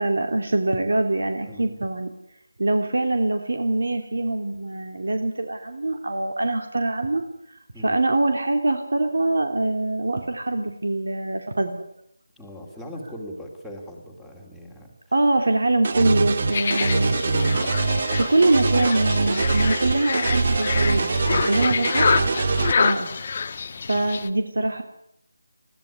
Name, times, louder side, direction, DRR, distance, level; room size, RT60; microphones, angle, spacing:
voice 1, 0.0-2.1 2.6-7.2 7.8-11.9 15.1-17.2 18.2-22.0 22.8-23.1 23.9-24.8, right 2 dB, 70° right, 6 dB, 2.9 m, -23 dB
voice 2, 12.4-14.9 17.4-17.8 21.4-22.0, equal, ahead, -1 dB, 2.5 m, -40 dB
sound 1, 15.8-22.7, right 3 dB, 35° right, 1.6 m, -23 dB
sound 2, 16.5-24.3, left 5 dB, 30° left, 1.2 m, -27 dB
21.0 x 15.5 x 10.0 m, 0.75 s
figure-of-eight pair, 175°, 0 cm